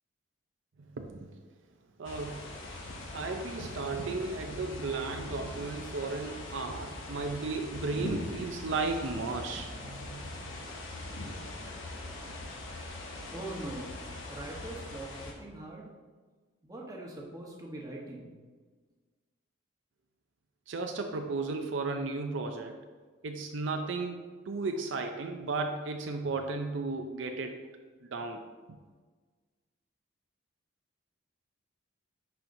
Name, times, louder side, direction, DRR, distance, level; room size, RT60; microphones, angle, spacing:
voice 1, 0.8-1.3 2.0-2.6 3.1-10.6 20.7-22.8 23.2-27.6 28.1-28.4, right 3 dB, 65° right, 4 dB, 0.5 m, -35 dB
sound 1, 2.0-15.3, left 2 dB, 70° left, 1.1 m, -41 dB
voice 2, 13.3-14.0 14.3-15.9 16.6-18.3, right 1 dB, 15° right, -2 dB, 1.0 m, -42 dB
10.5 x 4.4 x 2.6 m, 1.4 s
head